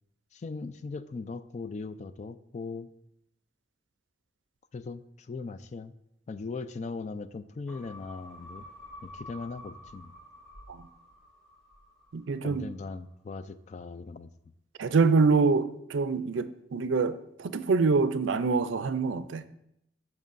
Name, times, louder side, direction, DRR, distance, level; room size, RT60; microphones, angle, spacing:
voice 1, 0.3-2.9 4.7-5.9 6.3-8.7 9.0-10.1 12.4-14.3, left 4 dB, 35° left, 0.3 m, -39 dB
sound 1, 7.7-12.3 12.7-12.8, left 1 dB, 5° left, 2.0 m, -49 dB
voice 2, 12.1-12.7 14.8-19.4, right 4 dB, 80° right, 0.4 m, -25 dB
10.5 x 6.0 x 2.5 m
head